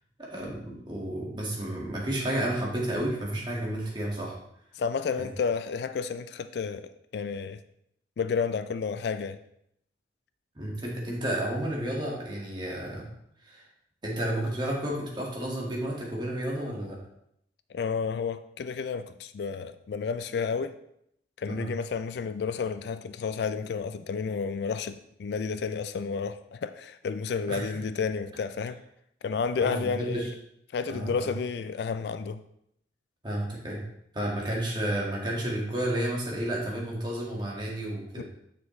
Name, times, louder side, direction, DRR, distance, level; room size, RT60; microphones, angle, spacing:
voice 1, 0.2-4.4 5.2-5.3 10.6-13.1 13.4-13.7 14.0-17.0 21.5-21.7 27.5-27.8 29.6-30.3 30.9-31.3 33.2-33.8 34.1-38.2, right 1 dB, 25° right, 1.7 m, -31 dB
voice 2, 4.8-7.6 8.2-9.4 17.7-20.8 21.4-28.8 29.2-30.2 30.7-32.4 38.2-38.3, left 5 dB, 65° left, 0.3 m, -31 dB
7.4 x 6.1 x 3.1 m
head